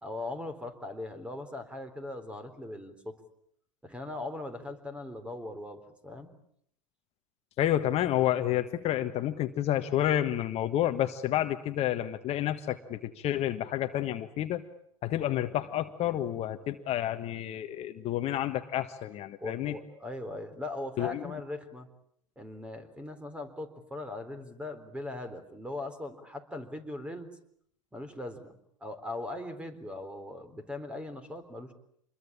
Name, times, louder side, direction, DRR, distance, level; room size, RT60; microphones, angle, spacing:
voice 1, 0.0-3.2 3.8-6.3 19.4-21.9 22.4-27.3 27.9-28.5 28.8-31.7, left 2 dB, 5° right, 10 dB, 3.9 m, -40 dB
voice 2, 7.6-14.6 15.0-19.8 21.0-21.2, left 12 dB, 40° left, 8 dB, 1.5 m, -30 dB
27.5 x 22.0 x 8.7 m, 0.69 s
hypercardioid pair, 95°, 17 cm